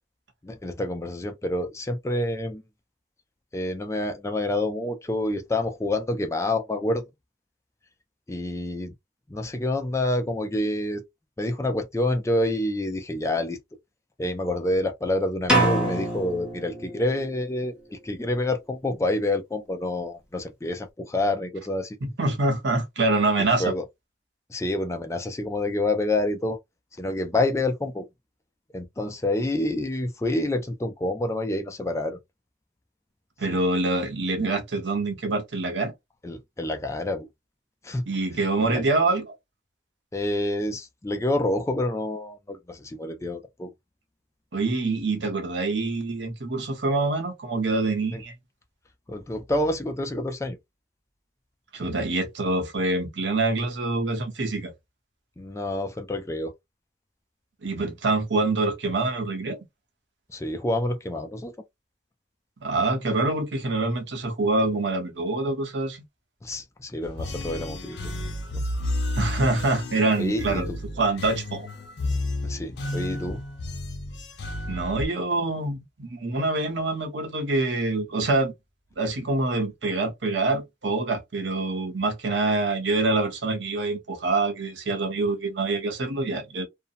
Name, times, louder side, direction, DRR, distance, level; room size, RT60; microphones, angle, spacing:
voice 1, 0.4-2.6 3.5-7.0 8.3-8.9 9.3-11.0 11.4-13.6 14.2-22.0 23.4-23.8 24.5-26.6 27.0-28.1 28.7-32.2 33.5-33.6 36.2-37.3 37.8-38.0 38.6-38.8 40.1-43.7 48.1-48.2 49.1-50.6 51.8-51.9 55.4-56.5 60.3-61.5 66.4-68.1 68.5-68.7 70.2-70.8 72.4-73.4, left 1 dB, 15° left, 0.3 m, -28 dB
sound 1, 15.5-17.4, right 1 dB, 5° right, 0.9 m, -25 dB
voice 2, 22.0-23.7 33.4-35.9 38.1-39.3 44.5-48.3 51.7-54.7 57.6-59.6 62.6-66.0 69.2-70.7 71.0-71.7 74.7-78.5 79.0-86.7, right 2 dB, 70° right, 0.8 m, -25 dB
sound 2, 67.0-75.1, left 1 dB, 65° left, 0.7 m, -32 dB
2.6 x 2.0 x 2.5 m
head